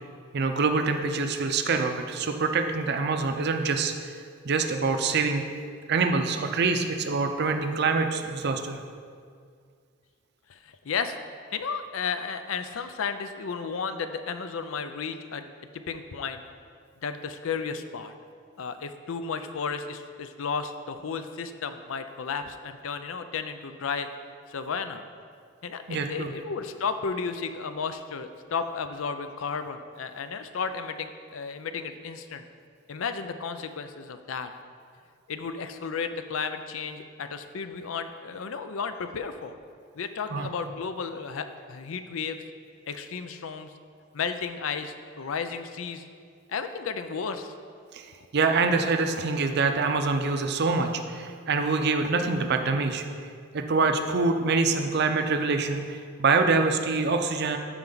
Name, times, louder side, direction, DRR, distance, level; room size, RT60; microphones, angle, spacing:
voice 1, 0.3-3.9 4.4-5.4 5.9-8.8 25.9-26.3 40.3-40.5 47.9-48.1 48.3-53.0 53.5-57.6, right 4 dB, 55° right, 6 dB, 0.6 m, -25 dB
voice 2, 10.5-11.2 11.5-15.5 15.7-16.4 17.0-18.1 18.6-24.1 24.5-25.0 25.6-32.4 32.9-34.5 35.3-39.6 40.0-42.4 42.9-43.7 44.1-46.0 46.5-47.5, left 5 dB, 85° left, 9 dB, 0.5 m, -33 dB
13.0 x 4.5 x 3.9 m, 2.2 s
head